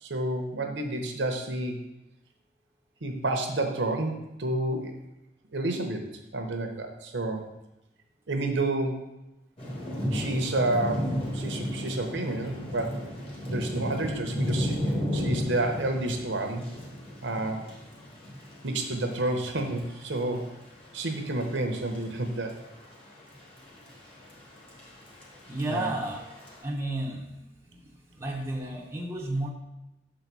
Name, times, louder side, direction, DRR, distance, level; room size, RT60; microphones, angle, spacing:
voice 1, 0.0-1.8 3.0-4.9 5.5-6.0 6.3-7.4 8.3-9.1 10.1-13.0 13.5-14.8 15.1-16.6 17.2-17.6 18.6-20.5 20.9-22.6 25.7-25.9, right 2 dB, 65° right, 4 dB, 0.8 m, -30 dB
Thunder / Rain, 9.6-26.6, equal, 30° left, 1.3 m, -35 dB
voice 2, 25.5-26.2 26.6-27.3 27.7-29.5, right 1 dB, 15° right, -2 dB, 0.6 m, -32 dB
6.3 x 4.0 x 4.6 m, 0.94 s
head